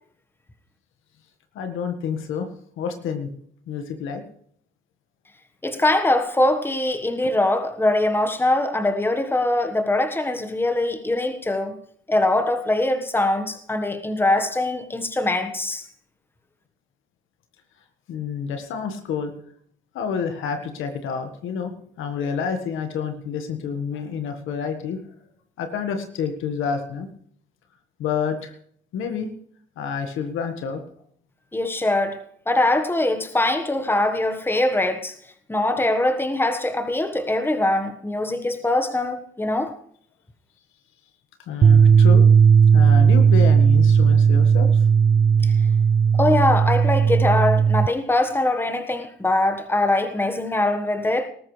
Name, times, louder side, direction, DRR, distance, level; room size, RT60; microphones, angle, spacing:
voice 1, 1.5-2.5 2.8-3.3 3.7-4.2 7.2-7.3 18.1-19.3 19.9-21.7 22.0-25.0 25.6-27.1 28.0-28.5 28.9-29.3 29.8-30.8 41.5-42.2 42.7-44.8, left 6 dB, 85° left, 1.6 m, -28 dB
voice 2, 5.6-11.8 12.1-15.8 31.5-32.2 32.5-35.1 35.5-39.7 45.4-45.5 46.2-51.3, left 2 dB, 10° left, 1.4 m, -22 dB
sound 1, 41.6-47.9, right 6 dB, 35° right, 0.4 m, -15 dB
19.0 x 13.5 x 3.3 m
cardioid pair, 90°, 20 cm